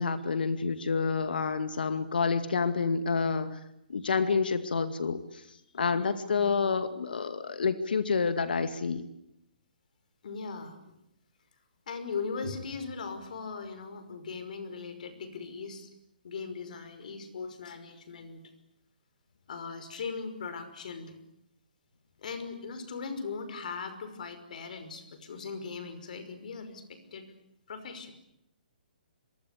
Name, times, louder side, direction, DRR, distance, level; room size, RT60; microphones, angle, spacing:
voice 1, 0.0-3.6 3.9-5.4 5.7-9.0, left 5 dB, 80° left, 10 dB, 2.2 m, -28 dB
voice 2, 5.9-6.4 10.2-10.8 11.9-15.9 16.2-18.4 19.5-21.2 22.2-27.3 27.7-28.1, left 5 dB, 55° left, 10 dB, 5.6 m, -39 dB
27.5 x 23.5 x 8.6 m, 0.80 s
hypercardioid pair, 165°, 5 cm